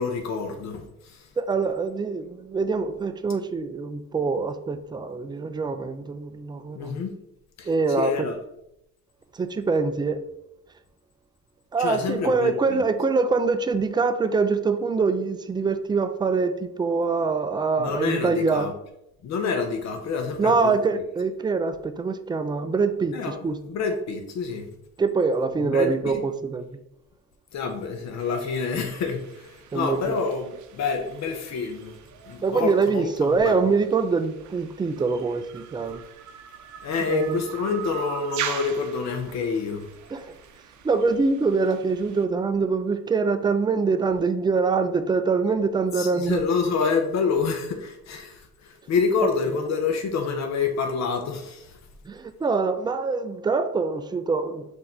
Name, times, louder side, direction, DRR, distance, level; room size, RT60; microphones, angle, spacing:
voice 1, 0.0-1.3 6.7-7.1 7.6-8.4 11.8-12.8 17.8-18.7 19.2-21.0 23.1-24.7 25.6-26.2 27.5-31.9 32.2-33.6 36.8-39.9 45.9-51.8, left 5 dB, 65° left, 5 dB, 0.6 m, -28 dB
voice 2, 1.4-7.0 7.7-8.1 9.3-10.2 11.7-18.7 20.4-23.6 25.0-26.7 29.7-30.2 32.4-36.0 37.1-37.4 40.1-40.3 40.8-46.4 52.1-54.7, right 4 dB, 15° right, 10 dB, 0.3 m, -24 dB
sound 1, 28.2-42.3, right 9 dB, 75° right, 0.5 m, -41 dB
4.0 x 2.6 x 4.3 m, 0.83 s
cardioid pair, 90°, 30 cm